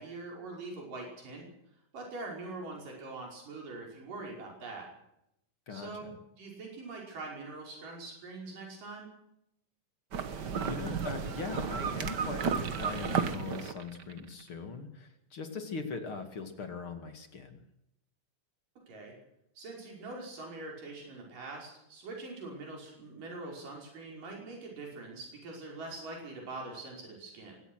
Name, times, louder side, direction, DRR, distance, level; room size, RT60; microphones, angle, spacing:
voice 1, 0.0-1.5 1.9-4.9 5.7-9.1 18.9-19.2 19.6-27.6, right 3 dB, 75° right, -1 dB, 7.1 m, -43 dB
voice 2, 5.7-6.1 10.2-17.6, left 4 dB, 45° left, 7 dB, 2.7 m, -40 dB
sound 1, 10.1-14.3, right 6 dB, 60° right, 1.1 m, -33 dB
23.0 x 18.0 x 6.4 m, 0.79 s
omnidirectional pair, 3.8 m